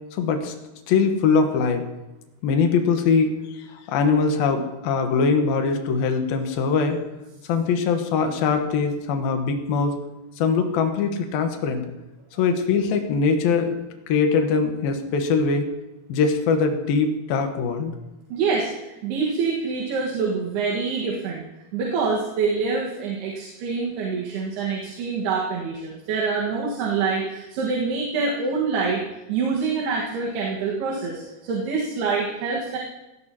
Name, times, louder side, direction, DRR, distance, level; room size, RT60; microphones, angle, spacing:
voice 1, 0.1-0.5 0.9-1.8 2.4-7.0 7.5-9.9 10.4-11.8 12.4-13.8 14.1-15.7 16.1-17.9, left 5 dB, 75° left, 5 dB, 2.9 m, -22 dB
voice 2, 18.3-18.7 19.0-21.5 21.7-29.0 29.3-32.8, right 4 dB, 85° right, -3 dB, 3.6 m, -25 dB
17.5 x 16.0 x 2.9 m, 0.99 s
omnidirectional pair, 4.5 m